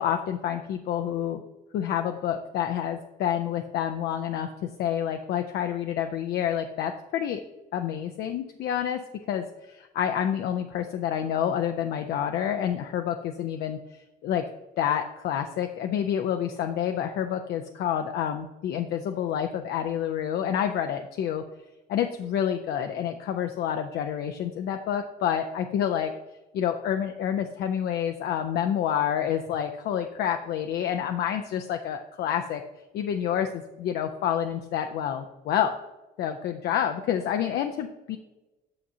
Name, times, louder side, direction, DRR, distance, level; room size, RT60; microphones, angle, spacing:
voice 1, 0.0-1.4 1.7-4.5 4.8-7.4 7.7-9.0 9.3-14.4 14.8-21.4 21.9-26.1 26.5-32.6 32.9-35.7 36.2-38.2, left 9 dB, 70° left, 6 dB, 0.5 m, -28 dB
8.6 x 6.2 x 2.7 m, 1.0 s
cardioid pair, 110°, 17 cm